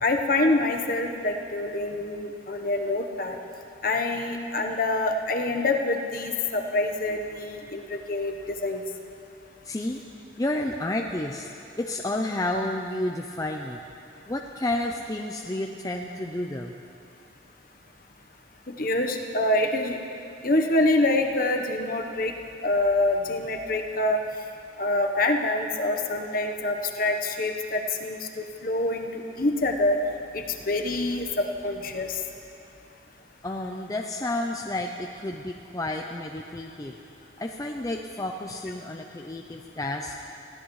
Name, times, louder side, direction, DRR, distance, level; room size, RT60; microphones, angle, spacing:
voice 1, 0.0-3.4 3.8-8.3 8.6-8.8 18.7-20.0 20.4-22.3 22.6-24.2 24.8-30.0 30.3-32.2, left 2 dB, 45° left, 3 dB, 1.0 m, -26 dB
voice 2, 9.6-10.0 10.4-11.5 11.8-13.8 14.3-16.8 33.4-36.9 37.4-40.2, left 1 dB, 20° left, 2 dB, 0.5 m, -31 dB
21.5 x 16.0 x 3.2 m, 2.7 s
head